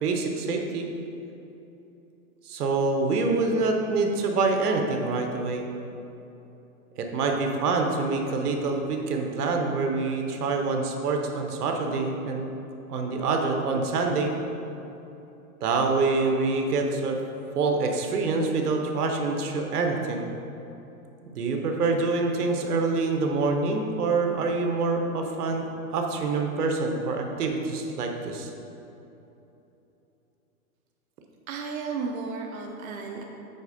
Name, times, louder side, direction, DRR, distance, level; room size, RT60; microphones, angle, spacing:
voice 1, 0.0-0.9 2.4-5.7 7.0-12.4 12.9-14.4 15.6-17.2 17.5-20.3 21.3-25.7 25.9-28.5, right 3 dB, 80° right, 3 dB, 1.1 m, -26 dB
voice 2, 31.5-33.2, right 4 dB, 65° right, 1 dB, 0.9 m, -33 dB
8.2 x 4.1 x 5.1 m, 3.0 s
hypercardioid pair, 155°, 45 cm